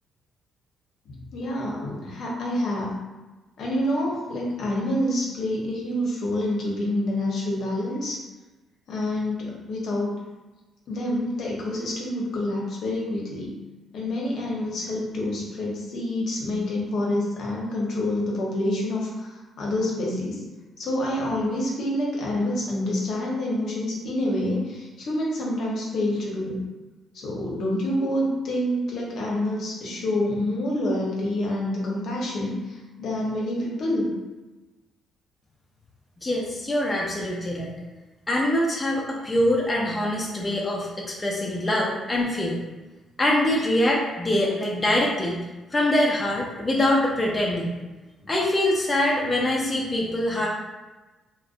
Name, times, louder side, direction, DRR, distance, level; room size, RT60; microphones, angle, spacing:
voice 1, 1.1-2.9 3.6-8.2 8.9-10.2 10.9-13.5 13.9-20.4 20.8-26.6 27.1-34.1 48.2-48.3, left 1 dB, 70° left, -3 dB, 0.6 m, -27 dB
voice 2, 36.2-37.7 38.3-42.6 43.2-45.4 45.7-47.7 48.3-50.5, left 1 dB, 20° left, -3 dB, 0.4 m, -24 dB
2.5 x 2.1 x 2.4 m, 1.2 s
cardioid pair, 90°, 0 cm